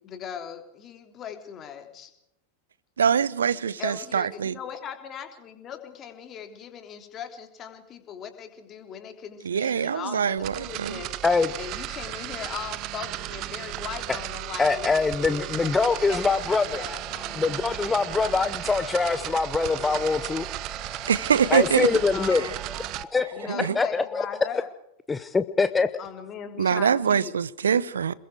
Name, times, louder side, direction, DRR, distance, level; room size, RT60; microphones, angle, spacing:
voice 1, 0.0-2.1 3.8-11.1 11.6-17.4 21.3-22.6 23.3-24.7 26.0-27.3, left 8 dB, 30° left, 3.3 m, -39 dB
voice 2, 3.0-4.6 9.4-11.0 21.1-21.9 23.5-23.8 26.6-28.1, right 7 dB, 70° right, 0.8 m, -24 dB
sound 1, 10.4-23.0, right 16 dB, 40° right, 0.9 m, -35 dB
voice 3, 14.6-16.8 17.4-20.5 21.5-22.5 23.1-23.3 23.7-24.2 25.1-25.9, left 4 dB, 15° left, 0.8 m, -23 dB
sound 2, 16.2-24.5, right 1 dB, 5° right, 1.6 m, -44 dB
27.5 x 21.5 x 4.7 m
figure-of-eight pair, 90°, 0 cm